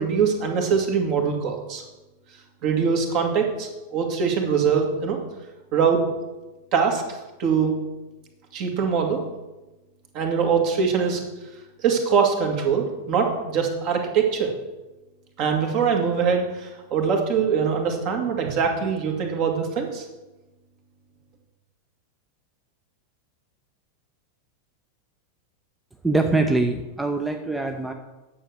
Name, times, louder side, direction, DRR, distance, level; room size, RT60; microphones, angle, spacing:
voice 1, 0.0-1.8 2.6-5.2 5.7-6.0 6.7-7.7 8.5-9.2 10.1-11.2 11.8-14.5 15.4-20.0, right 6 dB, 40° right, 3 dB, 2.2 m, -23 dB
voice 2, 26.0-27.9, right 2 dB, 5° right, 5 dB, 0.8 m, -23 dB
10.0 x 7.0 x 6.5 m, 1.1 s
figure-of-eight pair, 90°, 0 cm